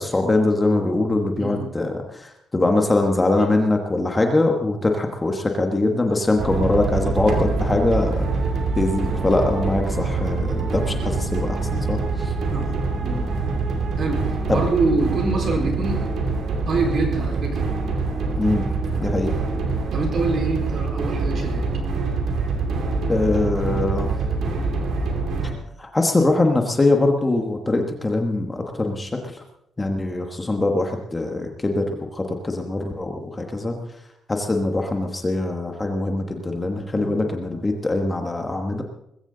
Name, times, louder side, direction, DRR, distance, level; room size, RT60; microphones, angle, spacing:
voice 1, 0.0-8.3 8.8-12.3 14.5-14.6 18.4-18.6 19.0-19.3 23.1-24.1 25.8-29.4 29.8-33.8 34.3-38.8, left 2 dB, 15° left, 3 dB, 1.3 m, -22 dB
sound 1, 6.4-25.5, right 3 dB, 65° right, 2.6 m, -25 dB
voice 2, 12.5-13.2 14.0-16.0 16.7-17.6 19.9-21.7 36.9-37.1, right 3 dB, 45° right, 1 dB, 4.3 m, -25 dB
20.5 x 15.5 x 3.9 m, 0.78 s
cardioid pair, 170°, 0 cm